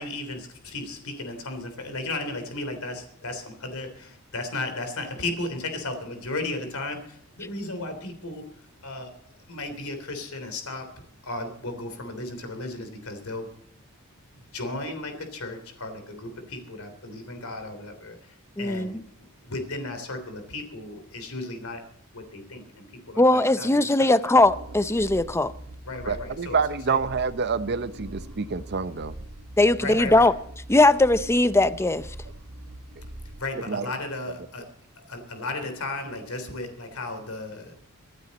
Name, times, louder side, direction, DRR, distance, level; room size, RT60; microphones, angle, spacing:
voice 1, 0.0-8.5 8.8-9.1 9.5-10.9 11.2-13.5 14.3-19.0 19.4-21.8 22.1-24.2 25.8-26.6 26.9-27.0 29.8-30.3 33.4-34.6 35.0-37.7, left 2 dB, 80° left, 3.3 m, -35 dB
voice 2, 18.6-19.0 23.2-25.5 29.6-30.3 30.7-32.1, left 2 dB, 10° left, 0.6 m, -20 dB
sound 1, 24.4-33.5, right 1 dB, 75° right, 1.5 m, -42 dB
voice 3, 26.1-29.2 33.7-33.9, right 5 dB, 50° right, 0.7 m, -27 dB
25.5 x 9.6 x 4.1 m
head